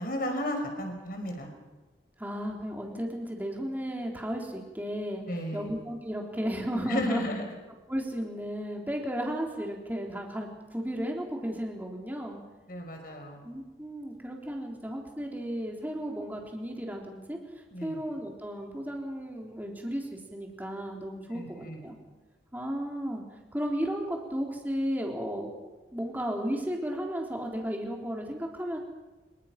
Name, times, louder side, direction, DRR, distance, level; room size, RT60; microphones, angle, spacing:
voice 1, 0.0-1.5 5.3-5.7 6.9-7.4 12.7-13.4 17.7-18.0 21.3-21.8, equal, 50° left, 4 dB, 5.2 m, -33 dB
voice 2, 2.2-5.2 5.5-7.3 7.9-12.4 13.4-17.4 17.8-22.0 22.5-23.2 23.5-28.8, equal, 10° right, 0 dB, 3.6 m, -34 dB
26.0 x 23.5 x 6.0 m, 1.2 s
head